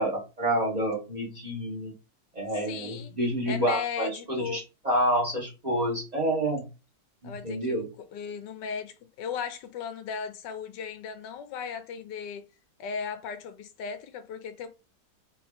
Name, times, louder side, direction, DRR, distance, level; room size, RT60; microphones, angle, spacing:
voice 1, 0.0-1.9 2.3-6.7 7.2-7.8, right 1 dB, 25° right, 1.3 m, -28 dB
voice 2, 2.7-3.1 3.5-4.6 7.2-12.4 12.8-14.7, left 6 dB, 80° left, 1.3 m, -36 dB
3.4 x 3.1 x 3.6 m
omnidirectional pair, 1.9 m